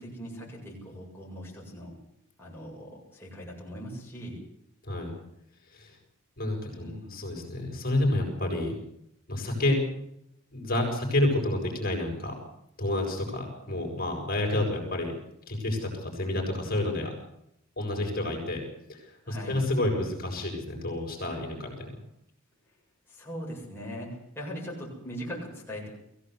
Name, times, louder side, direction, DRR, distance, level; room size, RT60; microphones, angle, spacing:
voice 1, 0.0-1.9 2.4-4.4 6.7-7.1 19.3-19.6 23.1-25.9, equal, 10° left, -5 dB, 7.5 m, -40 dB
voice 2, 4.8-5.1 5.7-6.0 6.4-8.8 9.3-9.8 10.5-12.3 12.8-15.1 15.5-17.1 17.8-18.6 18.9-22.0, left 1 dB, 40° left, 1 dB, 7.2 m, -29 dB
23.5 x 16.5 x 8.1 m, 0.78 s
head